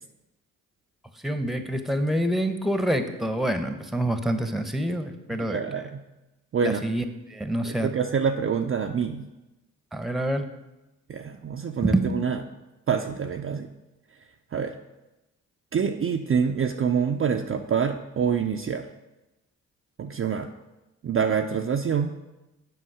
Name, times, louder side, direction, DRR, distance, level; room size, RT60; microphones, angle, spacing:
voice 1, 1.2-5.6 6.6-7.9 9.9-10.5 11.8-12.1, right 1 dB, ahead, 8 dB, 0.9 m, -26 dB
voice 2, 5.4-6.0 6.5-6.8 7.6-9.3 11.1-12.4 12.9-13.7 14.5-14.7 15.7-18.9 20.0-20.5 21.0-22.1, right 6 dB, 35° right, 4 dB, 0.6 m, -26 dB
7.9 x 5.5 x 4.9 m, 1.0 s
hypercardioid pair, 45°, 38 cm